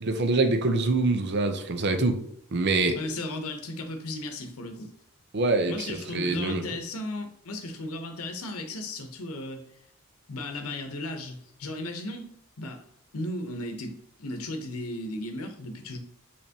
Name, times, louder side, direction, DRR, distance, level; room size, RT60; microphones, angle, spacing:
voice 1, 0.0-2.2 2.5-2.9 5.3-6.6, right 3 dB, 50° right, 7 dB, 0.6 m, -25 dB
voice 2, 2.9-4.9 5.7-9.6 10.3-12.8 13.1-16.0, left 1 dB, 80° left, 5 dB, 0.8 m, -35 dB
5.6 x 3.3 x 2.8 m, 0.70 s
head